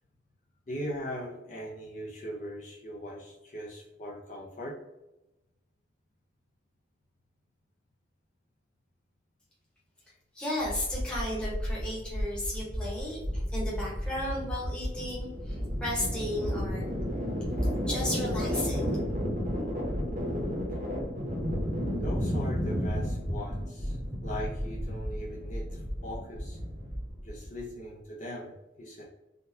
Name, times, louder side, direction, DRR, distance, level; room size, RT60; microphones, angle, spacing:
voice 1, 0.7-4.8 22.0-24.0 24.2-26.6 27.2-29.0, equal, 40° left, -4 dB, 0.6 m, -40 dB
voice 2, 10.3-16.9 17.8-19.0, left 1 dB, 5° left, -6 dB, 1.0 m, -34 dB
sound 1, 10.6-27.6, equal, 40° right, 0.8 m, -32 dB
3.6 x 2.3 x 2.7 m, 0.97 s
head